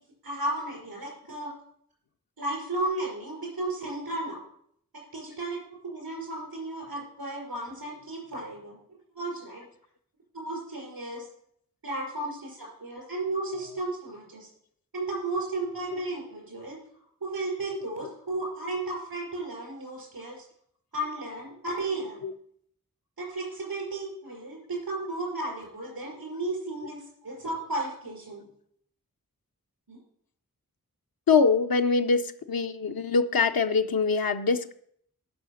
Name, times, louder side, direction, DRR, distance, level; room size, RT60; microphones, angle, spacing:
voice 1, 0.2-1.5 2.4-4.4 4.9-9.7 10.3-11.2 11.8-14.5 14.9-16.8 17.2-20.4 20.9-22.3 23.2-28.4 29.9-30.0, right 2 dB, 90° right, -1 dB, 5.1 m, -34 dB
voice 2, 31.3-34.7, left 4 dB, 80° left, 7 dB, 0.6 m, -24 dB
10.5 x 5.7 x 6.3 m, 0.67 s
wide cardioid pair, 65°, 35 cm